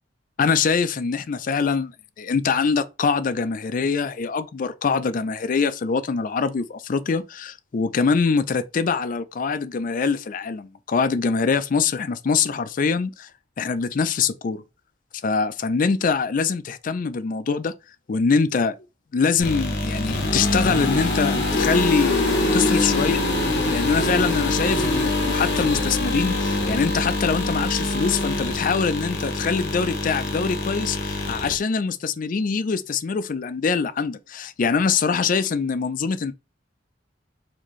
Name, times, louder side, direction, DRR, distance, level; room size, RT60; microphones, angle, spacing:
voice 1, 0.4-1.9 2.2-13.3 13.6-14.6 15.2-17.7 18.1-18.8 19.1-23.2 23.7-36.3, left 5 dB, 45° left, 0.4 m, -24 dB
sound 1, 19.4-31.6, left 2 dB, 65° left, 0.9 m, -24 dB
4.2 x 2.6 x 3.1 m
head